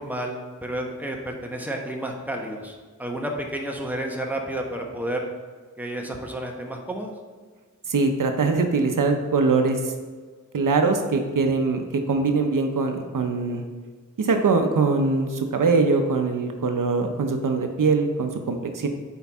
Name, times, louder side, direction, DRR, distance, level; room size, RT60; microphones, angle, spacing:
voice 1, 0.0-5.3 5.8-7.1, right 1 dB, 5° right, 1 dB, 1.2 m, -31 dB
voice 2, 7.9-9.9 10.5-13.6 14.2-18.9, right 4 dB, 75° right, 5 dB, 0.8 m, -22 dB
8.2 x 4.6 x 3.6 m, 1.5 s
cardioid pair, 55°, 32 cm